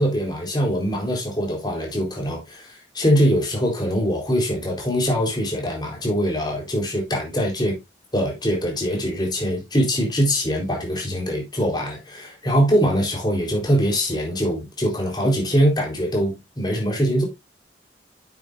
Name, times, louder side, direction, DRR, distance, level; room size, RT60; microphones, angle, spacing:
voice 1, 0.0-7.8 8.1-17.3, equal, 20° left, 4.0 m, -23 dB
9.5 x 8.6 x 2.6 m
head